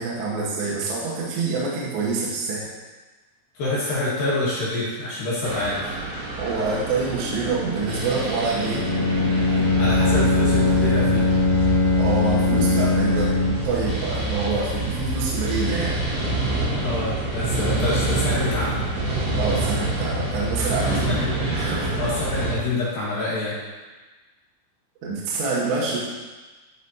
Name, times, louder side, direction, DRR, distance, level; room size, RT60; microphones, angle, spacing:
voice 1, 0.0-2.7 6.4-8.9 12.0-16.0 19.3-21.1 21.5-21.9 25.0-26.0, right 3 dB, 70° right, -6 dB, 3.4 m, -26 dB
voice 2, 3.5-5.8 9.8-11.3 16.7-18.8 21.1-21.3 22.0-23.6, left 2 dB, 60° left, -8 dB, 3.0 m, -26 dB
sound 1, 5.4-22.5, right 2 dB, 50° right, 2.6 m, -27 dB
Bowed string instrument, 8.7-13.8, left 3 dB, 75° left, 2.9 m, -21 dB
12.5 x 5.2 x 2.8 m, 1.3 s
omnidirectional pair, 5.5 m